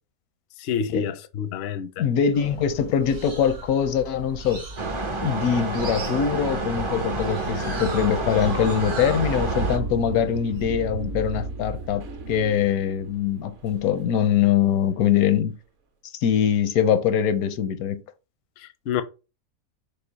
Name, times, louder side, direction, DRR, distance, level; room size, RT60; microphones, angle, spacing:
voice 1, 0.6-2.1 18.6-19.0, left 7 dB, 65° left, 0.6 m, -28 dB
voice 2, 2.0-4.6 5.2-15.6 16.1-18.0, left 8 dB, 85° left, 1.1 m, -23 dB
sound 1, 2.3-11.4, right 3 dB, 80° right, 2.1 m, -39 dB
sound 2, 4.8-9.8, right 3 dB, 40° right, 0.4 m, -29 dB
sound 3, 5.7-14.7, right 2 dB, 60° right, 1.0 m, -34 dB
5.4 x 2.0 x 3.9 m
omnidirectional pair, 1.6 m